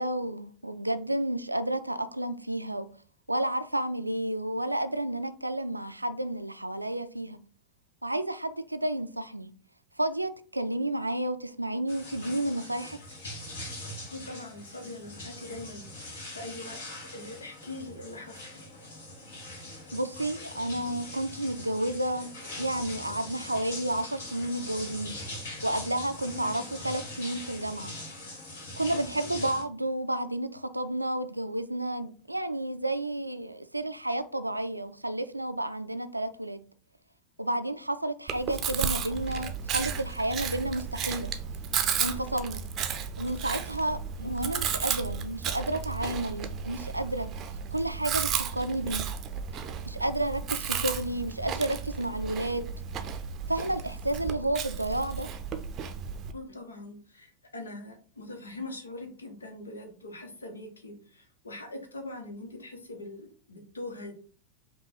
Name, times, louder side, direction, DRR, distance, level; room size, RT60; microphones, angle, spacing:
voice 1, 0.0-2.9 3.3-7.4 8.0-9.5 10.0-13.0 19.9-22.3 22.6-25.1 25.6-27.9 28.8-36.6 37.4-41.3 42.0-42.6 43.2-47.3 47.7-49.1 49.9-52.7 53.5-55.3, right 1 dB, 85° right, 0.3 m, -31 dB
sound 1, 11.9-29.6, left 1 dB, 55° left, 1.7 m, -42 dB
voice 2, 14.1-16.8 17.1-18.5 26.3-26.7 44.2-44.6 56.3-64.2, left 2 dB, 75° left, 0.9 m, -42 dB
Chewing mastication, 38.3-56.3, right 7 dB, 30° right, 0.5 m, -33 dB
5.4 x 2.3 x 4.0 m
figure-of-eight pair, 90°, 0 cm